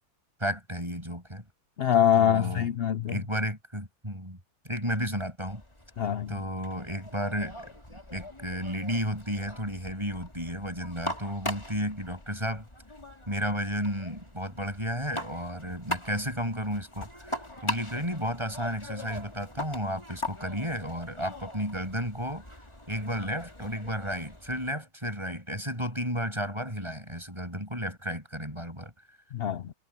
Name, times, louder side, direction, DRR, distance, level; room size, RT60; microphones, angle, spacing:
voice 1, 0.4-1.4 2.2-2.7 3.1-4.4 4.6-5.6 6.3-12.6 13.3-22.4 22.9-28.9, equal, 15° right, 7.6 m, -33 dB
voice 2, 1.8-3.2 6.0-6.3 29.3-29.7, left 9 dB, 85° left, 0.5 m, -24 dB
sound 1, 5.5-24.7, left 1 dB, 15° left, 3.1 m, -41 dB
omnidirectional pair, 1.8 m